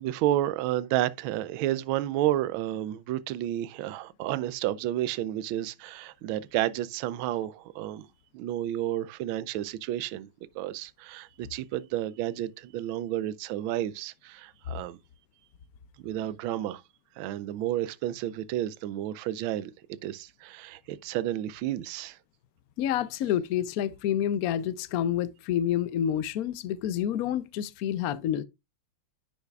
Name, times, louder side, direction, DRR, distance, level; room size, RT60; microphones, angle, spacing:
voice 1, 0.0-8.1 8.3-10.3 10.5-15.0 16.0-16.8 17.2-22.2, right 13 dB, 80° right, 1.4 m, -31 dB
voice 2, 22.8-28.4, left 10 dB, 85° left, 0.8 m, -28 dB
9.8 x 6.5 x 2.3 m
omnidirectional pair, 2.2 m